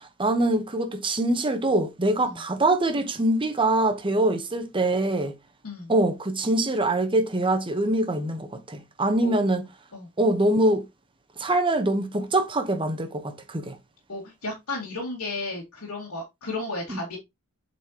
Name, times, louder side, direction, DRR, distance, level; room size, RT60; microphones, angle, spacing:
voice 1, 0.2-5.3 5.9-9.6 10.2-10.8 11.4-13.8 16.9-17.0, right 1 dB, 25° right, 1.0 m, -24 dB
voice 2, 14.1-17.2, left 2 dB, 75° left, 2.2 m, -33 dB
8.0 x 4.3 x 2.9 m
head